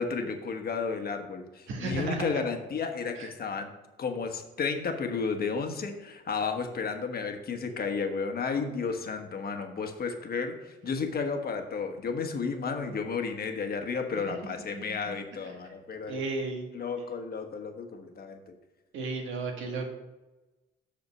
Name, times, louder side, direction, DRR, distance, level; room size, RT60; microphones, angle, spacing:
voice 1, 0.0-3.7 4.0-16.2 16.7-18.5, left 5 dB, 50° left, 5 dB, 1.2 m, -32 dB
voice 2, 1.7-2.4 3.2-3.3 14.3-15.2 15.4-15.7 16.0-16.7 18.9-19.8, right 3 dB, 80° right, 1 dB, 1.8 m, -35 dB
6.4 x 5.4 x 6.2 m, 1.1 s
cardioid pair, 90°, 20 cm